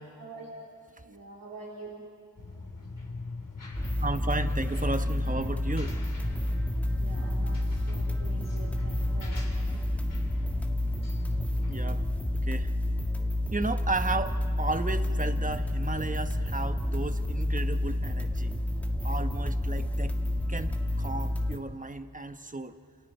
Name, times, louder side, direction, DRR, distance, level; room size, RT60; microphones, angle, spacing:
voice 1, 0.2-0.5 0.9-2.2 6.9-9.9, right 3 dB, 75° right, -4 dB, 3.4 m, -46 dB
sound 1, 2.4-12.1, left 3 dB, 65° left, 3.6 m, -40 dB
sound 2, 3.7-21.6, left 1 dB, 5° left, 1.8 m, -29 dB
voice 2, 4.0-6.0 11.7-12.1 12.4-12.7 13.5-18.5 19.0-20.2 20.5-22.8, right 2 dB, 25° right, 9 dB, 1.1 m, -34 dB
29.0 x 28.0 x 4.5 m, 2.2 s
cardioid pair, 60°, 34 cm